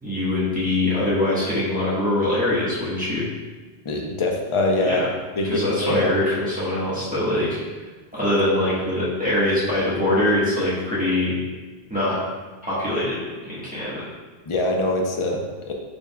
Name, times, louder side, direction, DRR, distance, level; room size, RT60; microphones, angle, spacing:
voice 1, 0.0-3.2 4.8-5.0 5.4-7.6 8.1-11.4 11.9-12.2 12.6-13.2 13.5-14.1, left 1 dB, 10° right, -10 dB, 1.2 m, -23 dB
voice 2, 3.9-5.0 5.4-6.1 14.5-15.7, left 2 dB, 40° left, 1 dB, 0.4 m, -23 dB
5.1 x 3.6 x 2.2 m, 1.3 s
omnidirectional pair, 1.1 m